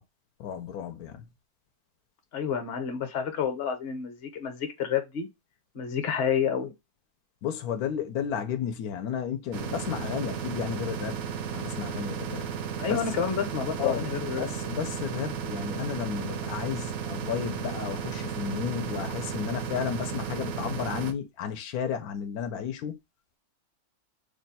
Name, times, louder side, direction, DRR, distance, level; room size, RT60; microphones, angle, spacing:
voice 1, 0.4-1.2 7.4-11.2 11.5-12.5 12.9-13.0 13.8-14.1 14.4-22.9, left 8 dB, 80° left, 1.1 m, -33 dB
voice 2, 2.3-5.3 5.7-6.7 12.8-14.5, left 7 dB, 50° left, 0.9 m, -29 dB
sound 1, 9.5-21.1, right 7 dB, 80° right, 1.1 m, -34 dB
3.2 x 2.2 x 4.0 m
omnidirectional pair, 1.6 m